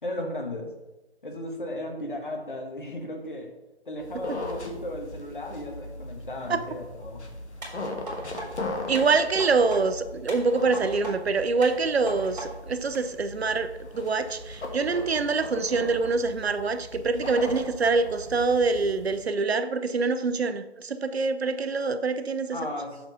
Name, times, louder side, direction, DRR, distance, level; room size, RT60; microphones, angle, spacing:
voice 1, 0.0-0.7 1.2-3.5 3.9-7.2 22.5-23.0, left 1 dB, 50° left, 1.3 m, -35 dB
sound 1, 4.0-19.3, left 2 dB, 80° left, 1.4 m, -39 dB
sound 2, 7.6-8.5 8.9-9.8 10.3-11.1 11.6-12.5 12.9-13.0, right 1 dB, 40° right, 2.0 m, -38 dB
voice 2, 8.9-22.6, right 4 dB, 70° right, 0.6 m, -25 dB
5.9 x 3.7 x 5.6 m
figure-of-eight pair, 175°, 33 cm